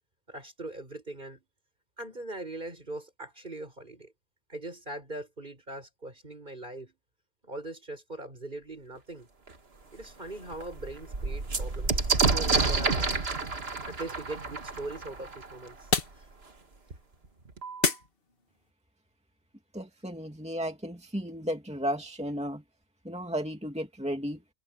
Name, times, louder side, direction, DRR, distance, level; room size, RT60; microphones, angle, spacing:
voice 1, 0.3-1.4 2.0-4.1 4.5-7.0 7.4-9.3 9.9-13.2 13.9-15.9 16.1-16.3, right 2 dB, 50° right, 6.2 m, -41 dB
sound 1, 9.5-9.6 10.0-10.1 10.4-15.9 16.9-17.0 17.3-17.9, right 4 dB, 70° right, 2.2 m, -29 dB
sound 2, 12.6-18.7, left 4 dB, 60° left, 2.1 m, -36 dB
voice 2, 19.7-22.6 23.0-24.4, equal, 5° right, 2.4 m, -34 dB
omnidirectional pair, 1.1 m